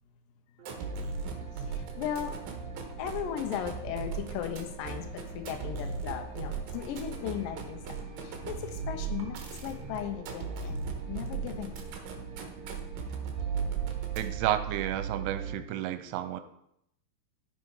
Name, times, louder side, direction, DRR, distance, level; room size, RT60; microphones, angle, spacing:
sound 1, 0.6-15.6, right 8 dB, 45° right, 4.7 m, -42 dB
sound 2, 0.6-14.6, right 5 dB, 65° right, 2.8 m, -38 dB
voice 1, 1.7-2.4 3.0-11.8, left 10 dB, 80° left, 5 dB, 2.0 m, -37 dB
voice 2, 14.2-16.4, right 12 dB, 85° right, 10 dB, 2.9 m, -31 dB
15.0 x 5.3 x 4.8 m, 0.75 s
omnidirectional pair, 4.8 m